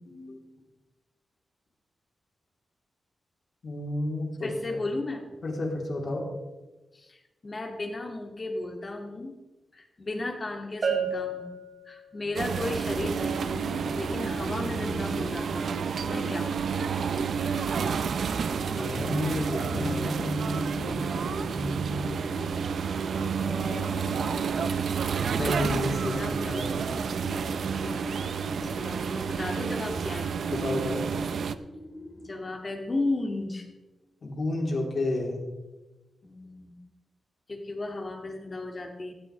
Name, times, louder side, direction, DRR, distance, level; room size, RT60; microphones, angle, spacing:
voice 1, 0.1-0.4 3.6-4.5 5.4-6.2 18.7-22.0 23.4-24.6 25.4-27.0 30.5-31.0 34.2-35.4, left 1 dB, 55° left, 0 dB, 3.5 m, -32 dB
voice 2, 4.4-5.2 6.9-9.3 9.7-11.6 11.9-13.6 13.9-16.7 26.0-26.5 28.6-30.3 32.2-33.7 36.2-36.8 37.5-39.1, left 2 dB, 30° left, 3 dB, 2.2 m, -34 dB
Bell, 10.8-12.5, right 4 dB, 55° right, 3.1 m, -31 dB
sound 1, 12.4-31.6, right 7 dB, 75° right, 0.6 m, -30 dB
sound 2, 12.9-32.3, equal, 5° right, 1.8 m, -39 dB
17.5 x 13.0 x 3.4 m, 1.1 s
wide cardioid pair, 120°, 0 cm